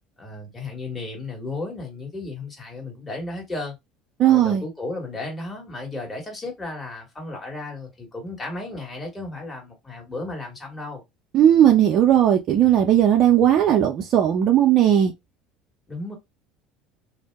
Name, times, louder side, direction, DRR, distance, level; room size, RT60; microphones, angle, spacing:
voice 1, 0.2-3.8 4.3-11.0 15.9-16.1, left 2 dB, 20° left, 1.5 m, -34 dB
voice 2, 4.2-4.6 11.3-15.1, right 10 dB, 55° right, 0.5 m, -17 dB
2.6 x 2.1 x 3.4 m
supercardioid pair, 85°, 0 cm